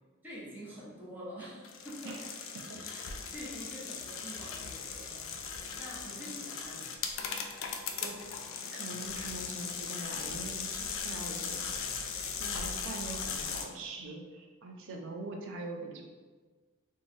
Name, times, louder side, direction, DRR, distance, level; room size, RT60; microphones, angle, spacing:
voice 1, 0.2-2.2 2.8-5.3 5.8-6.9, equal, 10° right, -8 dB, 0.7 m, -46 dB
sound 1, 1.6-13.6, left 6 dB, 65° left, 0.3 m, -38 dB
voice 2, 8.7-11.8 12.0-16.0, right 2 dB, 60° right, 2 dB, 0.4 m, -43 dB
3.0 x 2.2 x 2.5 m, 1.4 s
head